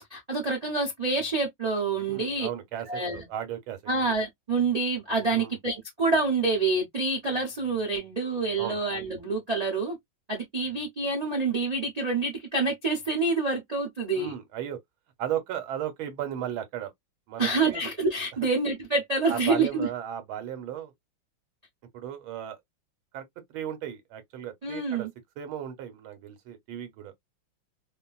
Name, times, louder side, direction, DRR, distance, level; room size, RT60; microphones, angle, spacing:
voice 1, 0.1-2.5 2.9-3.2 3.9-10.0 10.3-14.3 17.4-19.9 24.6-25.1, right 3 dB, 45° right, 0.5 m, -27 dB
voice 2, 2.1-3.8 5.3-5.5 8.6-8.8 14.1-14.8 15.2-16.9 17.3-17.8 19.3-20.9 21.9-22.6 23.1-23.2 23.5-25.1 25.4-27.1, right 10 dB, 80° right, 1.6 m, -35 dB
3.0 x 2.5 x 2.2 m
omnidirectional pair, 2.2 m